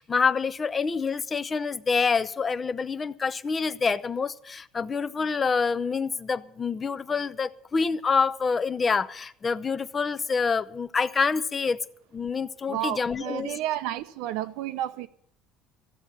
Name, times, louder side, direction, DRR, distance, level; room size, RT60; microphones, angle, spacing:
voice 1, 0.0-11.8 12.1-13.6, left 5 dB, 25° left, 0.5 m, -27 dB
voice 2, 12.7-15.1, right 12 dB, 85° right, 0.8 m, -31 dB
14.5 x 7.2 x 9.7 m
cardioid pair, 135°, 0 cm